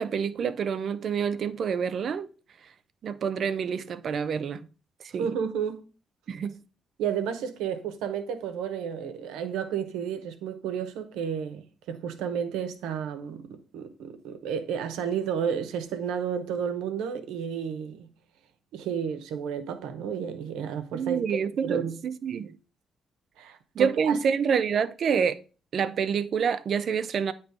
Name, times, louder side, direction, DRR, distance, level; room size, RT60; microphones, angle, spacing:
voice 1, 0.0-2.3 3.0-4.7 5.0-5.3 6.3-6.6 20.9-22.6 23.8-25.4 25.7-27.3, right 7 dB, 60° right, 0.5 m, -27 dB
voice 2, 5.2-5.8 7.0-18.1 18.7-21.3 21.6-22.0 23.4-24.2, right 7 dB, 90° right, 0.8 m, -32 dB
8.9 x 3.0 x 4.7 m
supercardioid pair, 65°, 0 cm